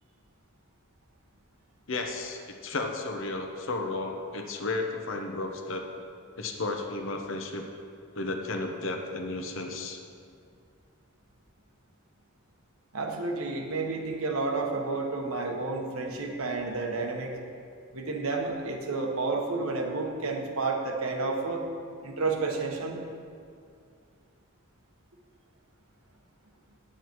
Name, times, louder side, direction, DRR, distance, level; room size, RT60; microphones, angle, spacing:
voice 1, 1.9-5.8 6.4-7.7 8.1-10.0, left 2 dB, 60° left, 4 dB, 0.9 m, -33 dB
voice 2, 12.9-17.3 17.9-21.6 22.0-23.0, right 3 dB, 85° right, 1 dB, 1.2 m, -30 dB
9.3 x 7.9 x 4.6 m, 2.3 s
head